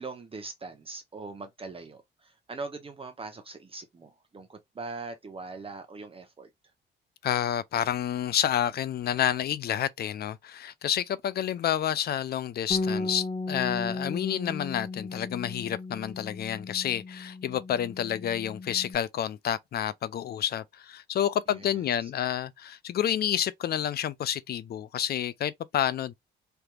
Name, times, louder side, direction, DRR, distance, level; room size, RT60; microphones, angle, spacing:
voice 1, 0.0-6.5 21.5-22.1, right 3 dB, 30° right, 0.8 m, -41 dB
voice 2, 7.2-26.1, left 10 dB, 50° left, 0.4 m, -29 dB
Bass guitar, 12.7-19.0, left 3 dB, 35° left, 0.9 m, -35 dB
3.4 x 2.8 x 2.3 m
cardioid pair, 90°, 20 cm